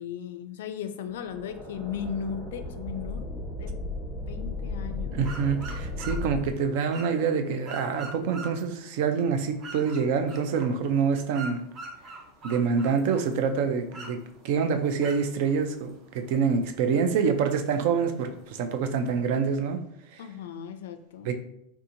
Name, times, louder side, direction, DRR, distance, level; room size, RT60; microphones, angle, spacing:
voice 1, 0.0-3.3 3.6-3.8 4.3-5.2 20.2-21.3, left 7 dB, 85° left, 10 dB, 0.3 m, -36 dB
sound 1, 1.1-6.5, left 2 dB, ahead, 1.1 m, -35 dB
voice 2, 5.1-11.6 12.4-14.2 14.4-19.8 20.1-20.2 21.2-21.3, right 6 dB, 60° right, 8 dB, 0.4 m, -26 dB
sound 2, 5.2-19.3, right 3 dB, 35° right, 0.8 m, -46 dB
3.5 x 2.8 x 2.6 m, 0.76 s
supercardioid pair, 135°, 0 cm